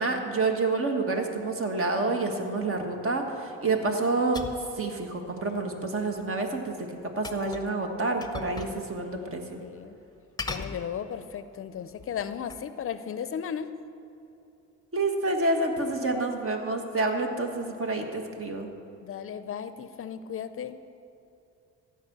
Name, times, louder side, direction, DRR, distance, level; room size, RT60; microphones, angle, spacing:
voice 1, 0.0-4.4 4.8-9.6 14.9-18.7, right 3 dB, 45° right, 4 dB, 1.5 m, -28 dB
sound 1, 4.3-4.7 7.2-7.7 8.2-8.8 9.1-9.2 10.4-11.3 11.9-12.7, left 4 dB, 15° left, 0.7 m, -38 dB
voice 2, 9.1-10.0 10.5-13.7 19.0-20.8, left 8 dB, 45° left, 12 dB, 0.5 m, -36 dB
15.0 x 5.1 x 7.9 m, 2.7 s
cardioid pair, 90°, 30 cm